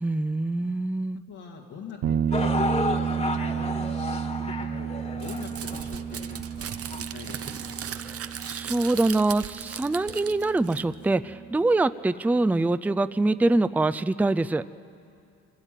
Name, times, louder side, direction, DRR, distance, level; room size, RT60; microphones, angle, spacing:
voice 1, 0.0-1.2 8.0-14.6, right 2 dB, 5° right, 12 dB, 0.4 m, -24 dB
voice 2, 1.3-4.1 4.4-7.7, left 6 dB, 80° left, -3 dB, 2.2 m, -44 dB
sound 1, 2.0-11.5, right 8 dB, 80° right, 1.1 m, -32 dB
sound 2, 2.3-8.5 9.2-9.3 10.1-10.2, left 2 dB, 20° left, 1.6 m, -33 dB
Crumpling crinkling, 5.2-11.1, right 9 dB, 50° right, 0.8 m, -38 dB
25.0 x 15.5 x 9.1 m, 2.5 s
cardioid pair, 90°, 30 cm